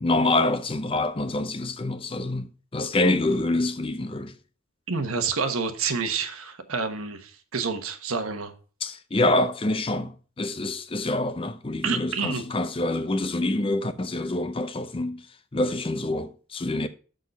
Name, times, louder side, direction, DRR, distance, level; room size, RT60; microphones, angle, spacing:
voice 1, 0.0-4.3 8.8-15.2 15.5-16.9, left 2 dB, 25° left, 0.5 m, -26 dB
voice 2, 4.9-8.5 11.8-12.4, right 5 dB, 85° right, 1.2 m, -28 dB
6.5 x 6.3 x 5.3 m
head